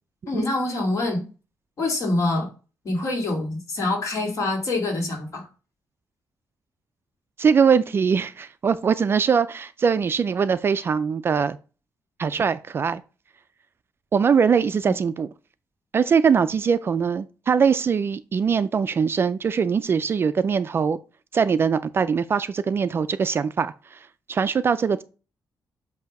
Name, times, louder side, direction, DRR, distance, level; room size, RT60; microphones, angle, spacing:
voice 1, 0.3-1.3 1.8-2.5 2.8-5.5, left 2 dB, 50° left, 2.1 m, -25 dB
voice 2, 7.4-11.6 12.2-13.0 14.1-15.3 15.9-21.0 21.3-25.0, right 6 dB, 35° right, 0.3 m, -22 dB
8.0 x 2.7 x 5.2 m
wide cardioid pair, 160°, 7 cm